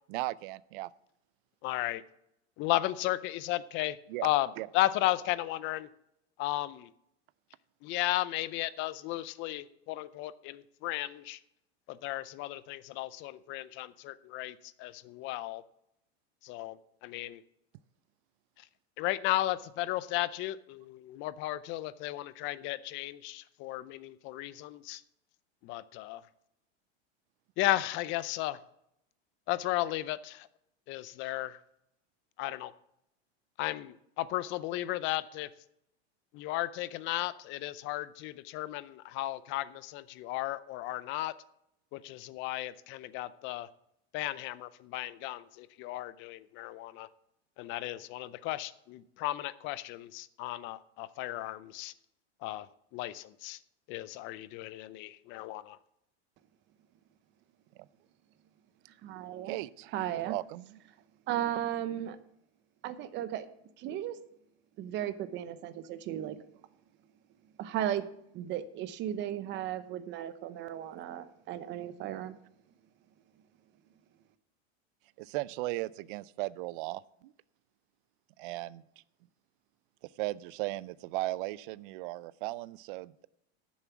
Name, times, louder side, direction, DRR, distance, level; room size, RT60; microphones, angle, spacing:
voice 1, 0.1-0.9 4.1-4.3 4.6-4.7 59.5-59.9 60.2-60.8 75.2-77.3 78.4-78.8 80.2-83.3, right 19 dB, 55° right, 20 dB, 0.5 m, -36 dB
voice 2, 1.6-2.0 2.6-4.0 4.2-5.9 6.4-6.9 7.8-11.4 11.9-15.6 16.4-17.4 18.6-18.7 19.0-25.0 25.6-26.2 27.6-28.6 29.5-30.5 30.9-31.6 32.4-32.7 33.6-35.5 36.3-41.3 41.9-43.7 44.1-47.1 47.6-51.9 52.4-52.7 52.9-53.6 53.9-55.8, left 16 dB, 35° left, 16 dB, 0.5 m, -34 dB
voice 3, 59.0-59.5 59.9-60.4 61.3-62.2 62.8-63.5 63.8-64.2 64.8-66.4 67.6-68.1 68.3-72.4, right 11 dB, 35° right, 12 dB, 0.9 m, -35 dB
11.0 x 7.2 x 7.0 m, 0.79 s
supercardioid pair, 140°, 33 cm